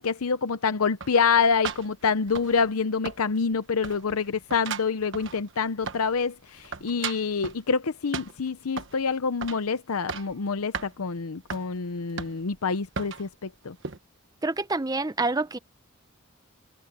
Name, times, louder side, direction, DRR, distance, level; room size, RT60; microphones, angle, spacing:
voice 1, 0.0-13.7, left 5 dB, 85° left, 0.7 m, -26 dB
sound 1, 1.0-2.8 3.1-3.6 3.8-6.2 6.5-7.6 8.1-9.0 9.4-9.7 9.9-10.4 10.7-10.9 11.5-11.7 12.2-12.6 13.0-13.3 13.8-14.0, right 5 dB, 55° right, 1.3 m, -36 dB
voice 2, 14.4-15.6, right 3 dB, 15° right, 0.6 m, -27 dB
head